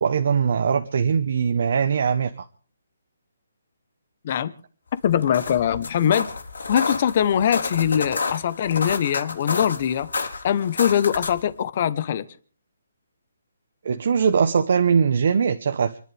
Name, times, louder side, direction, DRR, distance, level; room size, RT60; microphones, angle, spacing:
voice 1, 0.0-2.3 13.8-16.0, right 6 dB, 45° right, 1.1 m, -21 dB
voice 2, 5.0-6.3 6.7-10.1 10.4-12.2, left 9 dB, 30° left, 1.0 m, -22 dB
sound 1, 5.1-11.5, left 4 dB, 80° left, 3.6 m, -30 dB
29.0 x 11.0 x 3.5 m
hypercardioid pair, 175°, 0 cm